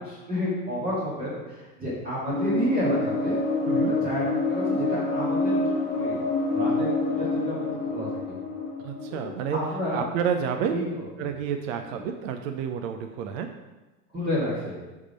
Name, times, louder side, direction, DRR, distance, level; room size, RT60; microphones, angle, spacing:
voice 1, 0.0-3.4 4.0-6.2 6.5-8.4 9.1-9.3 9.5-10.0 10.7-11.0 14.1-14.8, left 1 dB, 20° right, -8 dB, 1.9 m, -30 dB
sound 1, 2.3-10.4, left 2 dB, 25° left, 1.2 m, -27 dB
voice 2, 8.8-9.6 9.9-10.9 11.2-13.5, right 7 dB, 60° right, 6 dB, 0.6 m, -29 dB
6.5 x 3.6 x 5.3 m, 1.1 s
hypercardioid pair, 120°, 46 cm